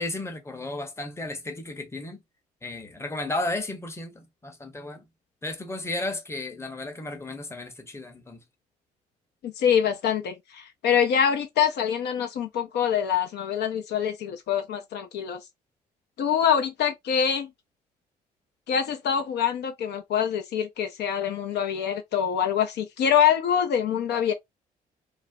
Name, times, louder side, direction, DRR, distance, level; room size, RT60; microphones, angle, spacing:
voice 1, 0.0-2.2 2.6-5.1 5.4-8.4, left 2 dB, 15° left, 0.7 m, -34 dB
voice 2, 9.4-15.4 16.2-17.5 18.7-24.3, left 8 dB, 55° left, 0.5 m, -25 dB
2.4 x 2.0 x 2.4 m
hypercardioid pair, 50°, 20 cm